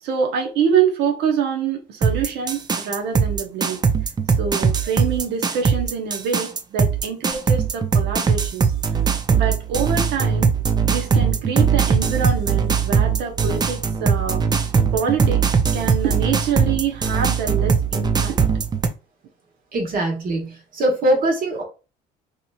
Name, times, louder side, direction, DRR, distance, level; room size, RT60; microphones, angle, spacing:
voice 1, 0.0-3.8 4.4-8.7 9.3-10.5 10.8-18.4, right 6 dB, 85° right, 0.8 m, -25 dB
sound 1, 2.0-18.9, right 6 dB, 25° right, 0.4 m, -20 dB
voice 2, 19.7-21.6, right 1 dB, 55° right, 1.4 m, -22 dB
2.9 x 2.9 x 2.3 m
cardioid pair, 110°, 17 cm